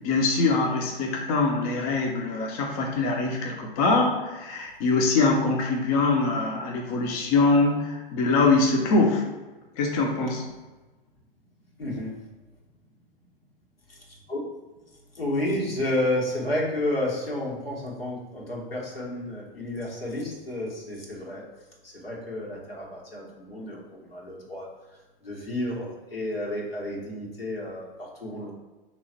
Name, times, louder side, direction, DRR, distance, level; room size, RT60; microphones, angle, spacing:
voice 1, 0.0-9.2 9.8-10.5, left 3 dB, 40° left, 1 dB, 0.7 m, -23 dB
voice 2, 11.8-12.1 13.9-14.4 15.1-21.4 21.8-24.7 25.2-28.5, left 1 dB, 85° left, -3 dB, 1.4 m, -31 dB
3.8 x 3.0 x 4.3 m, 1.2 s
figure-of-eight pair, 100°, 29 cm